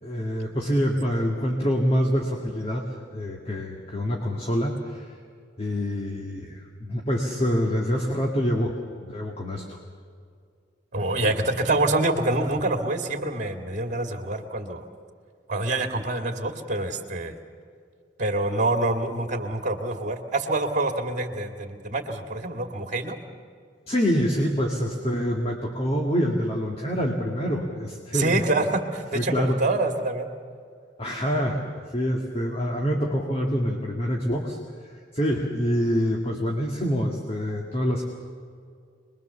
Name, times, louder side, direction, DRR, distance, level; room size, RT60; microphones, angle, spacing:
voice 1, 0.0-2.9 3.1-5.1 5.6-9.8 23.9-28.4 29.1-29.6 31.0-31.6 31.9-34.6 35.1-38.0, equal, 35° left, 0 dB, 2.0 m, -26 dB
voice 2, 10.9-14.9 15.5-17.4 18.2-23.2 28.1-30.3, right 2 dB, 40° right, 5 dB, 2.1 m, -26 dB
25.5 x 21.5 x 7.0 m, 2.2 s
head